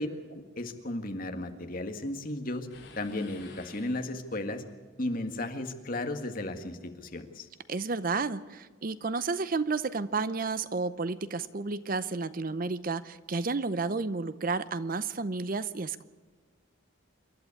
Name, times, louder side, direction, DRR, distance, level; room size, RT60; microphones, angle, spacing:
voice 1, 0.0-2.7 3.0-4.6 5.0-7.5, left 1 dB, 40° left, 6 dB, 1.8 m, -35 dB
sound 1, 2.7-4.5, left 3 dB, 60° left, 5.2 m, -52 dB
voice 2, 7.7-16.0, right 4 dB, 40° right, 15 dB, 0.6 m, -31 dB
27.5 x 11.5 x 8.4 m, 1.5 s
head